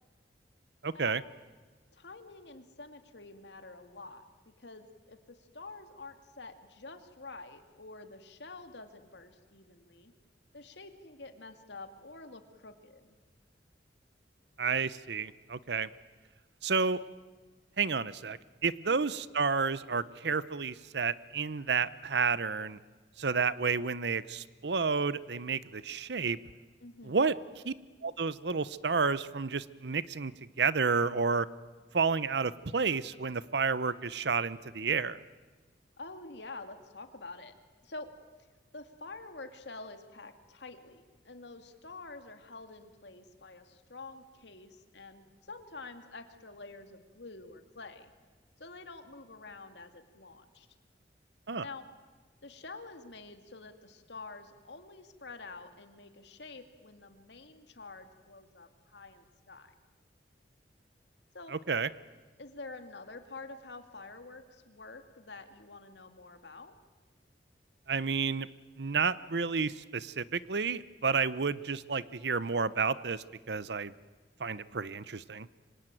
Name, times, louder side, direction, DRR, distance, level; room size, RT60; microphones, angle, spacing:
voice 1, 0.8-1.2 14.6-15.9 16.6-17.0 17.8-22.8 23.2-26.4 27.0-27.3 27.6-27.7 28.0-30.3 30.6-31.5 31.9-35.2 51.5-51.7 61.5-61.9 67.9-68.5 68.8-73.9 74.4-75.5, right 5 dB, 65° right, 17 dB, 0.8 m, -30 dB
voice 2, 1.9-10.1 10.5-13.2 18.9-19.1 26.8-27.3 36.0-37.5 37.8-38.1 38.7-48.1 48.6-50.7 51.6-51.9 52.4-59.7 61.3-61.5 62.4-66.7, left 3 dB, 70° left, 7 dB, 2.4 m, -48 dB
26.0 x 25.0 x 9.1 m, 1.3 s
head